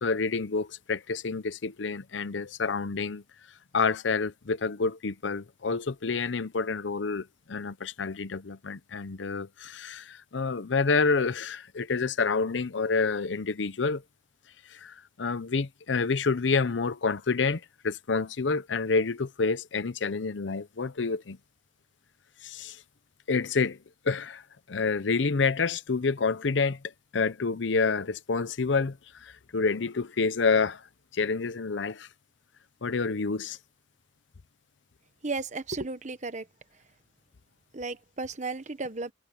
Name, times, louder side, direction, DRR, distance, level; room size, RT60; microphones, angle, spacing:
voice 1, 0.0-3.2 3.7-14.0 14.7-21.4 22.4-22.8 23.3-23.8 24.0-24.4 24.7-26.8 27.1-30.8 31.1-32.1 32.8-33.6, left 4 dB, 80° left, 0.7 m, -28 dB
voice 2, 35.2-36.5 37.7-39.1, right 3 dB, 40° right, 1.2 m, -34 dB
head